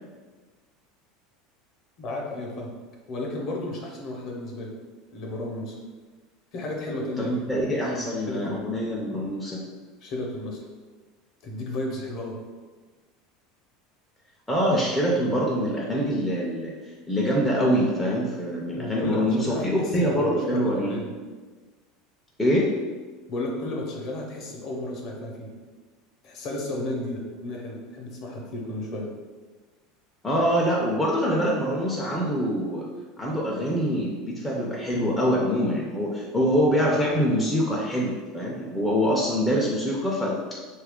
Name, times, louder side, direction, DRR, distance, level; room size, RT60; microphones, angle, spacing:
voice 1, 2.0-2.7 3.1-4.7 5.1-5.7 6.5-7.5 7.8-8.6 10.0-10.6 11.4-12.4 18.8-21.1 23.3-25.5 26.2-29.1, left 1 dB, 40° left, 0 dB, 0.6 m, -33 dB
voice 2, 7.2-9.6 14.5-16.7 17.1-21.0 22.4-22.7 30.2-32.9 33.2-40.6, equal, 5° left, -5 dB, 0.4 m, -24 dB
3.1 x 2.3 x 3.5 m, 1.4 s
supercardioid pair, 165°, 0 cm